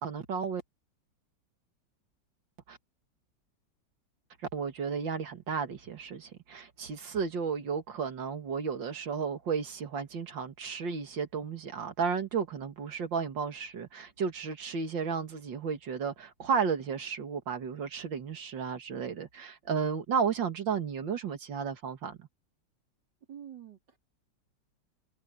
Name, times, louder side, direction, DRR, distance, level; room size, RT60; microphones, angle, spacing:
voice 1, 0.0-0.6 2.7-2.8 4.5-22.3, right 6 dB, 90° right, 2.6 m, -33 dB
voice 2, 23.3-24.0, right 9 dB, 70° right, 4.5 m, -47 dB
omnidirectional pair, 2.0 m